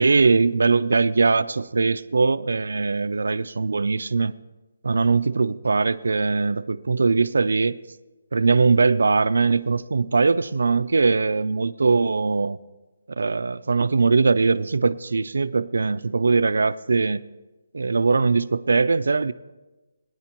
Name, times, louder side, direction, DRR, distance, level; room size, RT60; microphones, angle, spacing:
voice 1, 0.0-4.3 4.8-7.8 8.3-12.6 13.2-17.2 17.7-19.3, right 4 dB, 85° right, 14 dB, 0.3 m, -21 dB
19.5 x 9.5 x 3.0 m, 1.1 s
hypercardioid pair, 170°, 0 cm